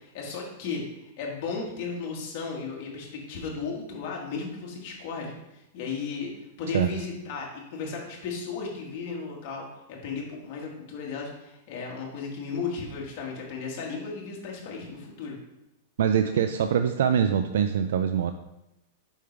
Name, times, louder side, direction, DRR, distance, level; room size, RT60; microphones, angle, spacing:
voice 1, 0.0-6.3 6.6-15.3, left 5 dB, 40° left, -1 dB, 1.6 m, -35 dB
voice 2, 16.0-18.3, right 8 dB, 80° right, 8 dB, 0.4 m, -23 dB
5.4 x 5.0 x 4.5 m, 0.90 s
supercardioid pair, 175°, 0 cm